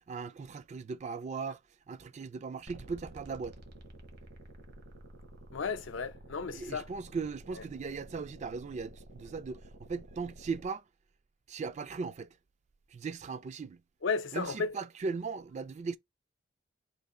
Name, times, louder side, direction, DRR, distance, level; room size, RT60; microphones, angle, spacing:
voice 1, 0.0-1.6 1.9-3.6 6.5-10.8 11.5-12.4 12.9-13.8 14.3-16.0, right 4 dB, 40° right, 0.3 m, -38 dB
sound 1, 2.7-10.7, right 1 dB, 60° right, 0.9 m, -51 dB
voice 2, 5.5-6.9 14.0-14.7, left 5 dB, 90° left, 0.6 m, -34 dB
3.3 x 2.4 x 3.6 m
head